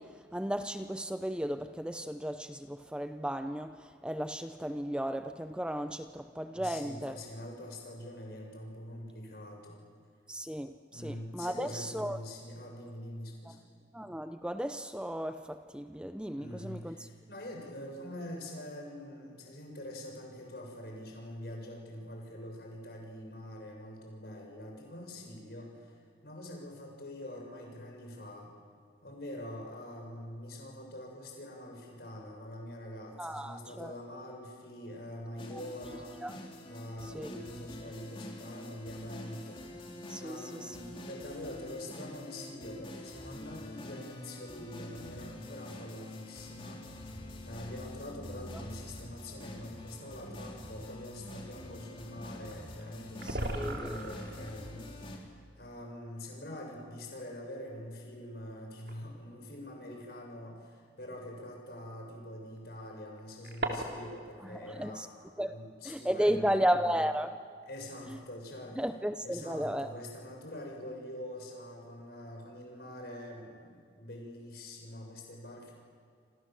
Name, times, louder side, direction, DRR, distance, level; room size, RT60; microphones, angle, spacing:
voice 1, 0.0-7.1 10.3-12.2 13.9-17.1 33.2-33.9 35.5-35.6 36.2-36.3 37.0-37.3 40.1-40.8 53.2-54.1 64.4-65.1 65.4-65.6 65.8-67.4 68.1-68.2 68.8-69.9, equal, 5° right, 0.6 m, -34 dB
voice 2, 6.5-9.8 10.9-13.7 16.3-26.0 26.2-28.5 29.0-36.2 36.7-39.9 40.2-46.8 47.4-65.1 65.4-66.9 67.7-68.9 69.2-75.7, left 1 dB, 60° left, 7.2 m, -45 dB
sound 1, 35.4-55.2, left 1 dB, 30° left, 3.7 m, -46 dB
sound 2, 49.9-50.0 52.5-52.6 52.8-52.9 53.1-54.5 55.9-56.0 56.9-57.0 58.9-59.1 60.4-60.5 62.6-64.2, right 2 dB, 70° right, 3.4 m, -37 dB
28.5 x 26.5 x 7.8 m
head